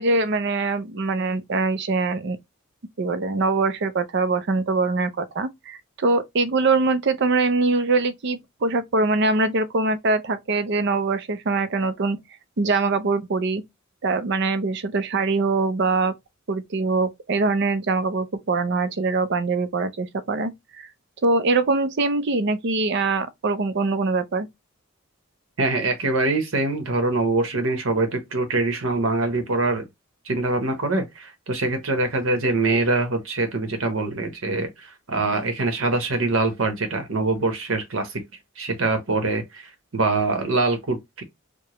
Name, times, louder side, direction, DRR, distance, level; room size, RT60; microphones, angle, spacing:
voice 1, 0.0-2.4 3.0-12.2 12.6-13.6 14.0-16.2 16.5-20.9 21.2-24.5, right 3 dB, 55° right, 0.6 m, -23 dB
voice 2, 25.6-29.8 30.2-38.2 38.6-41.2, right 3 dB, 75° right, 1.0 m, -24 dB
4.8 x 2.2 x 3.0 m
head